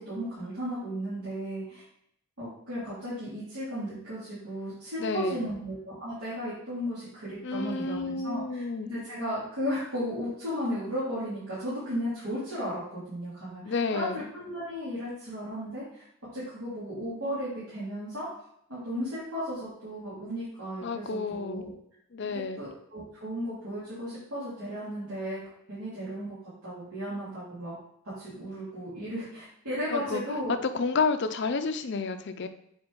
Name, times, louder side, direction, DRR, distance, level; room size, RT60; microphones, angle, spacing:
voice 1, 0.0-1.8 2.4-16.0 16.3-18.3 18.7-21.7 22.2-22.3 22.6-25.4 25.7-26.4 26.6-27.7 28.2-30.5, equal, 75° right, -12 dB, 2.8 m, -35 dB
voice 2, 5.0-5.5 7.4-8.9 13.6-14.3 20.8-21.7 22.1-22.6 29.9-30.2 30.5-32.5, left 4 dB, 50° left, 9 dB, 0.5 m, -30 dB
7.0 x 4.3 x 3.8 m, 0.73 s
head